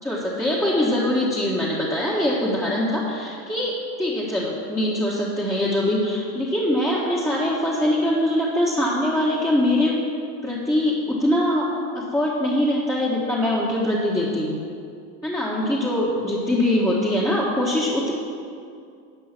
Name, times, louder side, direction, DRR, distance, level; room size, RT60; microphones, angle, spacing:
voice 1, 0.0-10.0 10.4-14.6 15.2-18.1, left 1 dB, 5° left, -6 dB, 1.5 m, -23 dB
11.0 x 5.6 x 6.0 m, 2.3 s
supercardioid pair, 95°, 38 cm